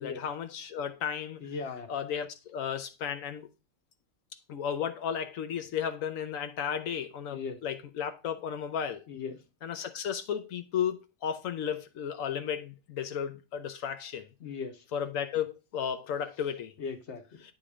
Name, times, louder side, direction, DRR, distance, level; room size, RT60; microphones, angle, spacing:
voice 1, 0.0-1.4 1.9-3.5 4.5-9.0 9.6-14.3 14.9-16.7, left 8 dB, 85° left, 1.1 m, -34 dB
voice 2, 1.4-1.9 7.3-7.6 9.1-9.4 14.4-14.8 16.8-17.4, left 5 dB, 60° left, 1.3 m, -38 dB
8.8 x 3.8 x 4.9 m
omnidirectional pair, 1.4 m